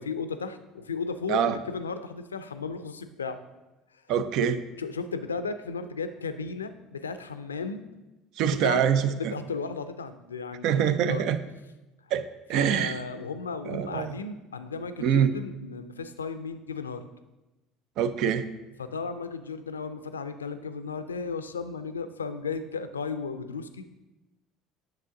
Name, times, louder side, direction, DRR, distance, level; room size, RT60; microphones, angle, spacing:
voice 1, 0.0-3.4 4.8-7.8 8.5-11.3 12.6-17.0 18.8-23.8, left 4 dB, 90° left, 11 dB, 0.4 m, -35 dB
voice 2, 4.1-4.6 8.4-9.3 10.6-11.4 12.1-12.9 13.7-14.1 15.0-15.3 18.0-18.5, right 8 dB, 60° right, 12 dB, 0.5 m, -25 dB
9.6 x 6.6 x 3.7 m, 1.0 s
hypercardioid pair, 65°, 0 cm